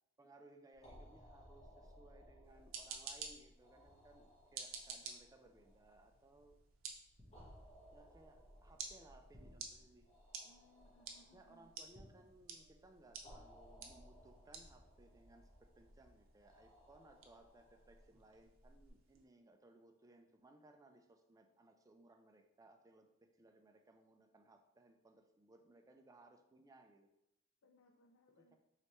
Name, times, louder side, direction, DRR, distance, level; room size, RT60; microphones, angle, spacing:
voice 1, 0.2-6.6 7.9-10.1 11.3-27.1 28.4-28.6, right 2 dB, 15° right, 5 dB, 0.3 m, -64 dB
sound 1, 0.7-18.9, equal, 30° left, 1.2 m, -63 dB
sound 2, 2.4-19.2, right 5 dB, 85° right, 0.6 m, -54 dB
sound 3, 7.2-7.9 9.3-10.3 11.9-13.0 13.3-13.5, equal, 10° left, 0.9 m, -63 dB
voice 2, 10.4-11.7 27.6-28.6, left 1 dB, 75° left, 3 dB, 0.4 m, -69 dB
4.4 x 3.2 x 2.9 m, 0.87 s
head